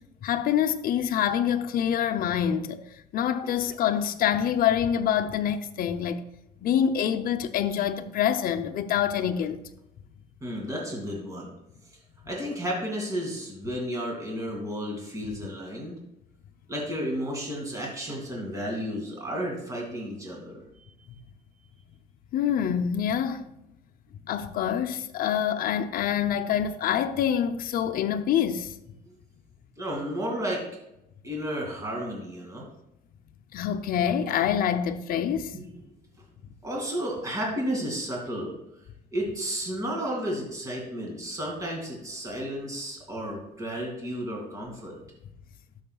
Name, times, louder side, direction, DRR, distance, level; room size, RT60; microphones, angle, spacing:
voice 1, 0.2-2.8 3.1-6.2 6.6-9.6 22.3-23.4 24.3-28.7 33.5-35.5, left 9 dB, 60° left, 0.6 m, -26 dB
voice 2, 10.4-11.5 12.3-16.0 16.7-20.9 29.1-29.2 29.8-30.6 31.2-32.7 35.5-35.8 36.6-38.6 39.1-44.9, equal, 20° right, 2.4 m, -32 dB
12.0 x 6.4 x 2.3 m
cardioid pair, 110°, 17 cm